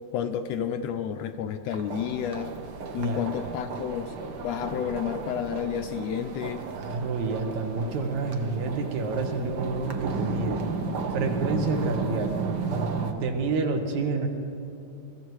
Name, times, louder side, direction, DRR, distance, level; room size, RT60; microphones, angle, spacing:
voice 1, 0.1-2.6 2.9-4.1 4.4-6.6, left 8 dB, 80° left, 8 dB, 1.6 m, -30 dB
sound 1, 1.7-13.1, right 4 dB, 65° right, 1.0 m, -33 dB
voice 2, 3.0-3.6 6.7-10.6 11.1-12.3 13.0-14.3, right 4 dB, 80° right, 5 dB, 2.6 m, -29 dB
22.5 x 14.0 x 4.7 m, 2.8 s
omnidirectional pair, 3.3 m